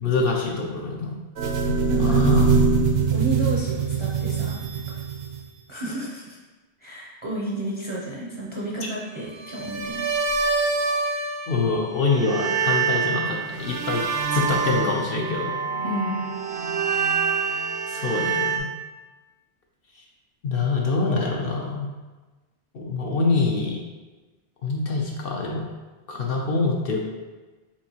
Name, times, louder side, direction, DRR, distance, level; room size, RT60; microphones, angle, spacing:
voice 1, 0.0-1.2 1.7-2.5 11.5-15.5 17.9-18.7 20.4-21.9 22.7-23.8 24.6-25.7 26.1-27.0, left 4 dB, 60° left, -1 dB, 0.7 m, -25 dB
sound 1, 1.4-5.6 9.4-11.8 12.1-18.6, right 5 dB, 65° right, 0.8 m, -24 dB
voice 2, 1.9-4.6 5.7-6.4 6.8-10.1 15.8-16.2, right 1 dB, 35° right, -5 dB, 0.5 m, -31 dB
7.0 x 2.7 x 2.8 m, 1.2 s
omnidirectional pair, 1.2 m